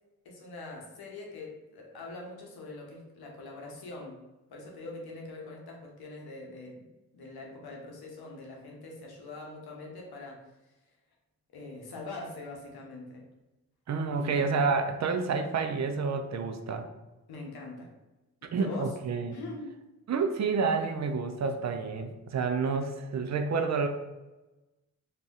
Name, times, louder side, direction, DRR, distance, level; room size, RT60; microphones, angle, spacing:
voice 1, 0.2-4.2 4.5-6.9 7.1-10.4 11.5-13.2 14.1-14.5 17.3-17.9 18.6-19.0 19.3-19.8, left 2 dB, 80° left, 0 dB, 0.8 m, -43 dB
voice 2, 13.9-16.9 18.5-19.3 20.1-23.9, right 4 dB, 50° right, 5 dB, 0.4 m, -29 dB
2.6 x 2.1 x 3.5 m, 1.1 s
supercardioid pair, 40°, 37 cm